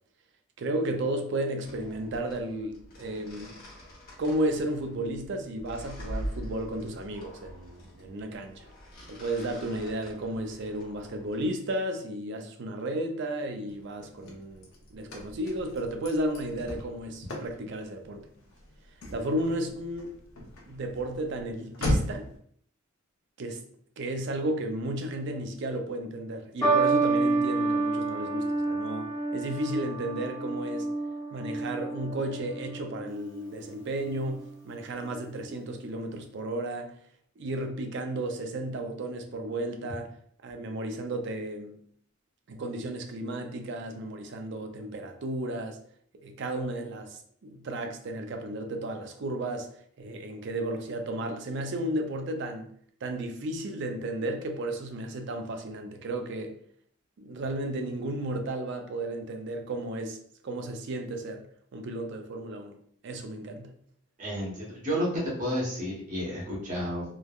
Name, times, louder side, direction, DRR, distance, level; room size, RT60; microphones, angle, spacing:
voice 1, 0.6-3.6 4.2-8.7 9.1-18.3 19.1-20.1 20.7-22.3 23.4-23.6 24.0-30.9 31.3-36.9 37.4-40.1 40.4-41.8 42.5-45.8 46.2-49.7 50.0-52.7 53.0-56.6 57.2-60.2 60.4-61.4 61.7-62.8 63.0-63.7, right 1 dB, 60° right, 5 dB, 0.4 m, -33 dB
sound 1, 1.6-11.5, right 1 dB, 45° left, 1.0 m, -44 dB
Car / Slam, 13.7-22.4, left 1 dB, 85° left, 0.6 m, -37 dB
sound 2, 26.6-33.1 34.0-34.4, right 3 dB, 15° left, 0.7 m, -29 dB
voice 2, 64.2-65.1 65.4-67.0, equal, 40° right, -5 dB, 0.9 m, -31 dB
3.2 x 2.1 x 2.3 m, 0.62 s
head